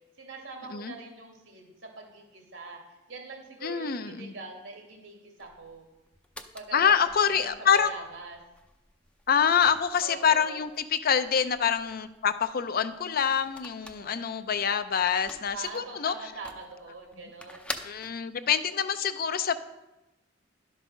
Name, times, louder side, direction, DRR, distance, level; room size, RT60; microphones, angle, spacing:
voice 1, 0.2-5.8 6.5-6.9 7.2-8.4 10.0-10.6 13.8-14.4 15.5-17.7, right 3 dB, 85° right, 1 dB, 2.5 m, -43 dB
voice 2, 3.6-4.3 6.7-7.9 9.3-16.1 17.8-19.6, left 7 dB, 50° left, 12 dB, 0.5 m, -26 dB
sound 1, 5.4-18.1, left 1 dB, 5° left, 0.5 m, -48 dB
11.0 x 5.4 x 6.1 m, 0.99 s
head